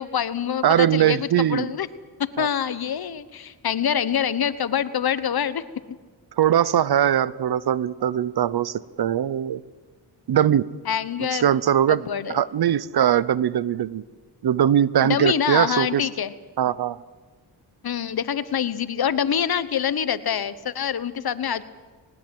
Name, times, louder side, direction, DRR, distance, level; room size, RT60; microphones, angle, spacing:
voice 1, 0.0-1.9 2.2-5.6 10.9-11.6 11.9-12.4 15.0-16.3 17.8-21.6, left 8 dB, 60° left, 15 dB, 1.1 m, -25 dB
voice 2, 0.6-1.7 2.4-2.5 6.4-9.6 10.3-10.6 11.3-12.0 12.3-14.0 14.4-16.1 16.6-17.0, right 10 dB, 65° right, 19 dB, 0.8 m, -21 dB
20.0 x 19.5 x 7.8 m, 1.4 s
cardioid pair, 80°, 41 cm